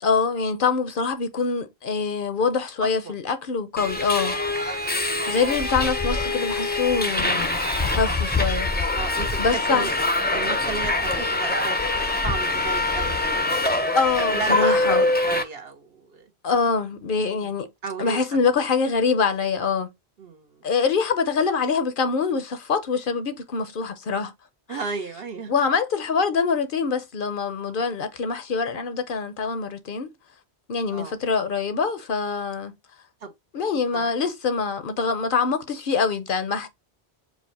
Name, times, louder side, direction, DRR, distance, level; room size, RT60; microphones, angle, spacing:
voice 1, 0.0-4.4 5.3-7.5 7.8-8.7 9.4-9.9 13.9-15.0 16.4-17.7 18.0-19.9 20.6-24.3 24.7-24.8 25.5-30.1 30.7-32.7 33.5-36.7, left 5 dB, 60° left, 0.7 m, -24 dB
voice 2, 2.8-3.1 4.2-4.3 4.9-5.4 8.9-13.6 14.3-16.3 17.4-18.3 20.2-20.6 24.7-25.5 30.9-31.1 33.2-33.3 33.9-34.1, right 4 dB, 65° right, 1.1 m, -34 dB
Subway metro underground, 3.8-15.4, left 2 dB, 15° left, 0.4 m, -24 dB
4.8 x 2.1 x 4.0 m
omnidirectional pair, 1.1 m